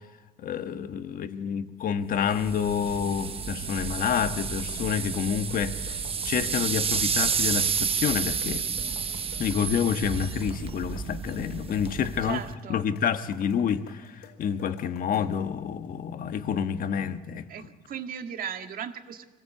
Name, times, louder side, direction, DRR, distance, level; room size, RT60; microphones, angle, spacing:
voice 1, 0.4-6.0 6.2-8.7 9.4-12.4 12.7-17.5, left 7 dB, 55° left, 1.4 m, -28 dB
sound 1, 2.3-12.5, right 6 dB, 35° right, 1.1 m, -30 dB
sound 2, 4.4-15.4, left 8 dB, 90° left, 4.4 m, -52 dB
voice 2, 12.2-12.8 17.5-19.3, right 8 dB, 60° right, 1.8 m, -36 dB
25.5 x 18.5 x 8.5 m
cardioid pair, 110°, 17 cm